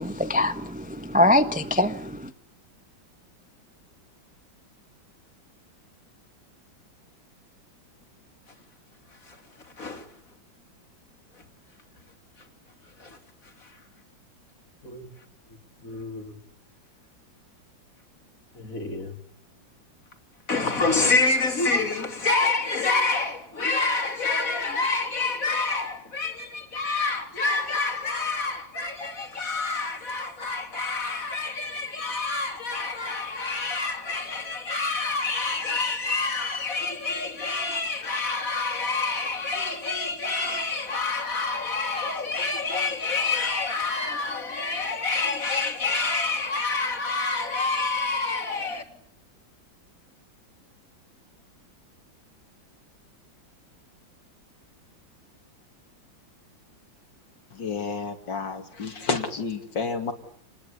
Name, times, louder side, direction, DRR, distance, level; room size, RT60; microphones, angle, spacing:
voice 1, 0.0-2.3, left 1 dB, 5° right, 0.7 m, -23 dB
voice 2, 9.6-10.1 13.0-13.2 13.4-13.8 14.8-15.1 15.8-16.4 18.6-19.2 20.5-48.8, left 3 dB, 45° left, 3.3 m, -27 dB
voice 3, 57.5-60.1, left 4 dB, 70° left, 3.1 m, -30 dB
29.0 x 20.5 x 8.4 m
omnidirectional pair, 2.1 m